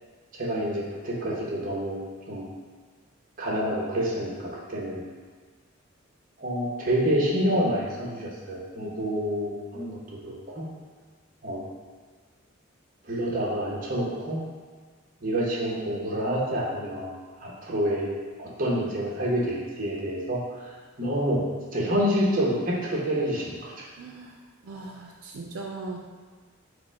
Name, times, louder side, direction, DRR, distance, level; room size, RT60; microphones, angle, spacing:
voice 1, 0.3-2.0 2.3-2.5 3.4-5.0 6.4-10.7 11.4-11.6 13.0-14.4 15.2-17.1 17.4-18.1 18.4-21.4 21.7-23.7, equal, 40° right, -5 dB, 1.0 m, -28 dB
voice 2, 24.0-24.4 24.6-26.0, right 3 dB, 85° right, 0 dB, 0.4 m, -39 dB
4.9 x 2.1 x 4.6 m, 1.5 s
head